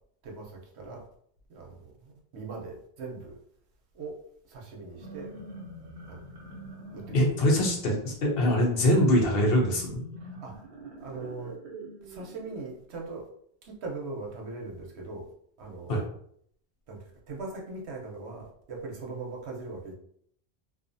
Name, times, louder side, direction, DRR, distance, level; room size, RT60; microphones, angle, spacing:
voice 1, 0.2-1.1 1.5-3.4 3.9-4.2 4.5-5.3 6.1-6.6 6.9-7.3 10.2-10.6 11.0-11.5 12.0-13.3 13.6-15.3 15.6-16.1 16.9-19.9, right 3 dB, 85° right, 0 dB, 1.0 m, -40 dB
sound 1, 4.8-12.7, equal, 55° right, 0.9 m, -45 dB
voice 2, 7.1-10.0 15.9-16.0, left 1 dB, 65° left, 0 dB, 0.9 m, -23 dB
2.5 x 2.4 x 2.5 m, 0.66 s
omnidirectional pair, 1.1 m